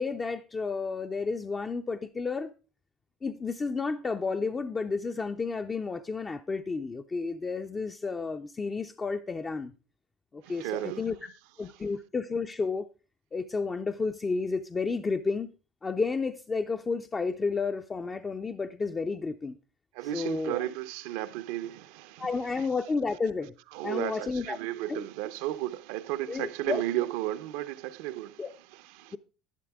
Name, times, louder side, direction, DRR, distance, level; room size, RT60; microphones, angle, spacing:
voice 1, 0.0-2.5 3.2-9.7 10.3-11.2 11.6-12.9 13.3-15.5 15.8-19.6 20.1-20.6 22.2-23.5 23.8-24.6 24.9-25.0 26.3-26.8 28.4-28.5, left 4 dB, 20° left, 0.4 m, -31 dB
voice 2, 10.4-11.0 19.9-22.7 23.7-28.4 28.7-29.2, right 15 dB, 80° right, 0.7 m, -34 dB
11.0 x 11.0 x 3.5 m
cardioid pair, 130°, 0 cm